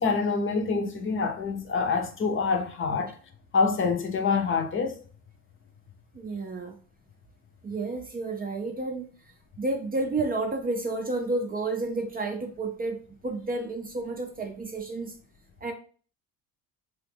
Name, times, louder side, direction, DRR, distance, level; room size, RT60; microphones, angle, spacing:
voice 1, 0.0-3.1 3.5-5.0, left 4 dB, 35° left, 0.6 m, -26 dB
voice 2, 6.1-6.8 7.6-15.2 15.6-15.7, right 2 dB, 25° right, 0.5 m, -31 dB
3.0 x 2.3 x 3.3 m
supercardioid pair, 90°, 36 cm